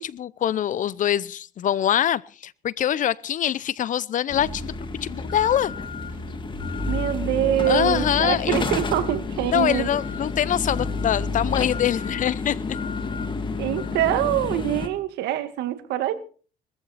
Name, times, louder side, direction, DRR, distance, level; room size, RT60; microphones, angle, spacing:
voice 1, 0.0-4.7 5.0-5.7 7.7-8.6 9.5-12.6, left 10 dB, 50° left, 0.8 m, -24 dB
sound 1, 4.3-14.9, left 3 dB, 30° left, 2.4 m, -30 dB
voice 2, 6.9-9.9 13.5-16.1, right 12 dB, 85° right, 1.9 m, -24 dB
21.0 x 14.5 x 4.2 m
cardioid pair, 110°, 17 cm